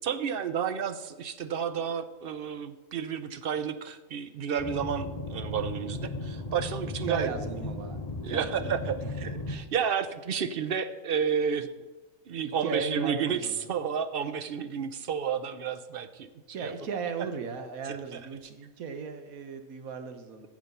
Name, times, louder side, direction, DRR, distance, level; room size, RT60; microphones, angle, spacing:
voice 1, 0.0-7.3 8.2-11.7 12.3-16.3 16.6-16.7 17.8-18.3, right 7 dB, 55° right, 12 dB, 0.6 m, -31 dB
sound 1, 4.6-9.6, left 2 dB, 30° left, 1.1 m, -36 dB
voice 2, 7.1-8.0 8.3-8.8 9.0-9.1 12.4-13.6 16.5-20.5, right 5 dB, 75° right, 8 dB, 1.5 m, -36 dB
15.0 x 5.0 x 5.4 m, 1.2 s
omnidirectional pair, 1.5 m